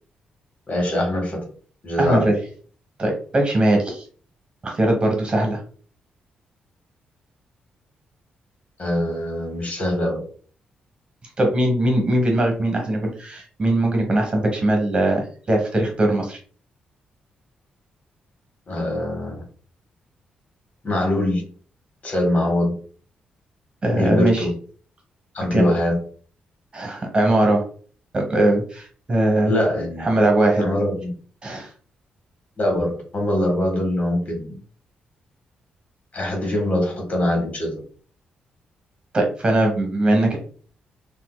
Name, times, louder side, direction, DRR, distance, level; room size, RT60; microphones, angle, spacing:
voice 1, 0.7-1.4 1.8-2.3 8.8-10.2 18.7-19.3 20.8-21.4 22.0-22.7 23.9-24.5 25.3-26.0 29.4-30.1 30.6-31.1 32.6-34.6 36.1-37.8, left 1 dB, 50° left, 1 dB, 1.6 m, -23 dB
voice 2, 2.0-2.3 3.0-4.0 4.6-5.6 11.4-16.4 23.8-24.5 25.5-25.7 26.7-27.6 28.1-29.5 30.0-30.6 31.4-31.7 39.1-40.4, right 1 dB, 35° right, 2 dB, 1.2 m, -20 dB
3.7 x 2.7 x 2.2 m, 0.43 s
cardioid pair, 80°, 3 cm